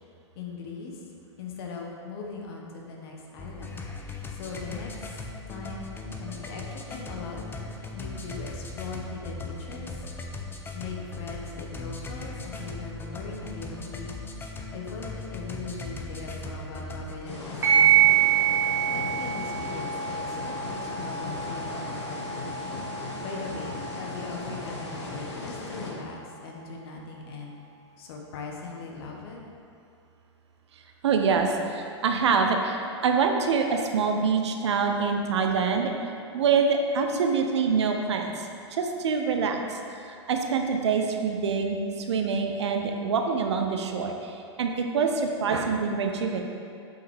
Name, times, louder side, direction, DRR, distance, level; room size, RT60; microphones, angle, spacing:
voice 1, 0.3-1.0 1.4-5.2 5.5-9.9 10.3-14.1 14.7-18.3 18.9-22.5 23.2-27.5 28.0-29.4, left 4 dB, 55° left, 0 dB, 1.2 m, -40 dB
sound 1, 3.4-17.2, left 2 dB, 15° left, 0.6 m, -38 dB
sound 2, 17.2-25.9, left 3 dB, 75° left, 1.5 m, -37 dB
sound 3, 17.6-26.6, right 9 dB, 15° right, 1.7 m, -27 dB
voice 2, 31.0-35.9 36.3-39.8 40.0-41.8 42.1-46.4, right 5 dB, 70° right, 4 dB, 0.8 m, -25 dB
8.1 x 5.6 x 3.4 m, 2.4 s
figure-of-eight pair, 100°, 15 cm